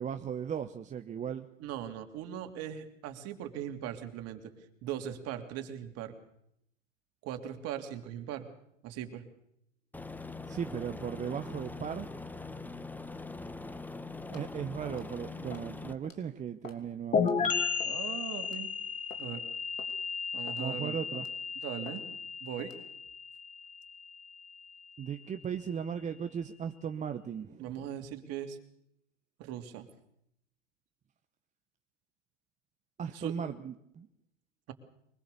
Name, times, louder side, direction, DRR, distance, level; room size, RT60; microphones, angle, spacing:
voice 1, 0.0-1.5 10.5-12.1 14.3-17.6 20.6-21.3 25.0-27.9 33.0-34.1, right 8 dB, 20° right, 7 dB, 1.0 m, -37 dB
voice 2, 1.6-4.5 4.8-6.1 7.2-8.5 8.8-9.2 17.8-18.7 19.2-19.4 20.3-21.0 21.6-22.0 22.4-22.7 27.6-28.6 29.4-29.9 33.1-33.3, right 10 dB, 40° right, 6 dB, 3.0 m, -39 dB
Aircraft, 9.9-15.9, left 3 dB, 5° left, 1.2 m, -42 dB
sound 1, 14.3-14.5 14.9-15.1 15.5-15.7 16.0-16.2 16.6-16.9 17.2-17.3 17.8-18.0 18.4-18.6 19.1-19.3 19.8-19.9 20.5-20.7 21.1-21.4 21.9-22.0 22.6-22.8, left 5 dB, 85° left, 3.2 m, -49 dB
sound 2, 17.1-24.7, left 6 dB, 20° left, 2.3 m, -34 dB
23.5 x 20.5 x 6.9 m, 0.74 s
hypercardioid pair, 105°, 38 cm